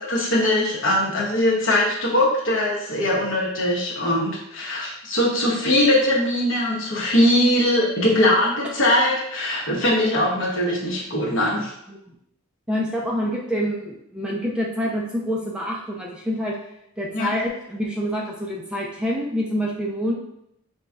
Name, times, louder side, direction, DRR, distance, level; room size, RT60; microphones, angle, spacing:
voice 1, 0.1-11.7 17.1-17.3, left 1 dB, 60° left, -3 dB, 1.0 m, -21 dB
voice 2, 12.7-16.5 17.0-20.1, equal, 5° right, -3 dB, 0.4 m, -27 dB
5.2 x 3.1 x 2.3 m, 0.78 s
head